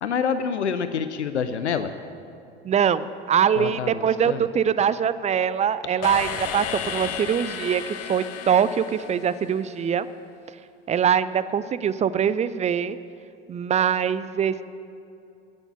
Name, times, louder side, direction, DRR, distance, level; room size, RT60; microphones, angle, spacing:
voice 1, 0.0-1.9 3.6-4.5, left 6 dB, 80° left, 10 dB, 0.7 m, -27 dB
voice 2, 2.6-7.8 8.1-10.1 10.9-13.0 13.5-14.6, right 8 dB, 20° right, 15 dB, 0.5 m, -23 dB
sound 1, 6.0-9.9, left 8 dB, 45° left, 1.2 m, -33 dB
13.0 x 9.1 x 9.0 m, 2.7 s
figure-of-eight pair, 70°, 34 cm